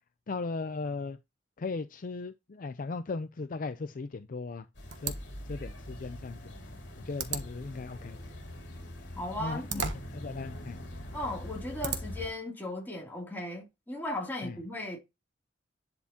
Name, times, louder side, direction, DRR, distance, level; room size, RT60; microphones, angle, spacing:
voice 1, 0.3-1.2 1.6-4.6 5.0-5.1 5.4-6.5 7.0-8.2 9.4-9.8 10.1-10.8 14.4-14.6, left 3 dB, 50° left, 0.5 m, -37 dB
sound 1, 4.7-12.3, left 1 dB, 65° left, 3.4 m, -43 dB
sound 2, 4.9-12.3, right 6 dB, 80° right, 1.2 m, -41 dB
voice 2, 9.2-9.9 11.1-15.0, left 1 dB, 10° left, 2.8 m, -37 dB
10.5 x 4.4 x 2.9 m
head